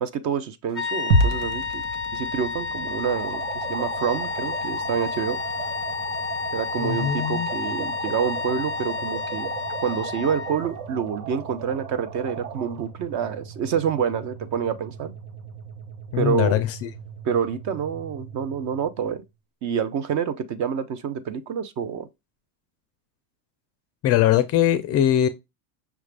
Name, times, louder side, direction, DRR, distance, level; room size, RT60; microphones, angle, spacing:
voice 1, 0.0-1.8 2.1-5.4 6.5-9.5 9.8-15.1 16.1-16.6 17.2-19.2 19.6-22.1, right 7 dB, 40° right, 0.5 m, -27 dB
sound 1, 0.7-10.7, left 5 dB, ahead, 1.0 m, -30 dB
sound 2, 1.1-19.3, right 1 dB, 80° right, 1.2 m, -34 dB
sound 3, 2.9-12.8, right 8 dB, 60° right, 1.0 m, -37 dB
voice 2, 6.8-7.5 16.1-16.9 24.0-25.3, left 11 dB, 35° left, 0.4 m, -21 dB
5.9 x 2.4 x 3.3 m
supercardioid pair, 130°, 45 cm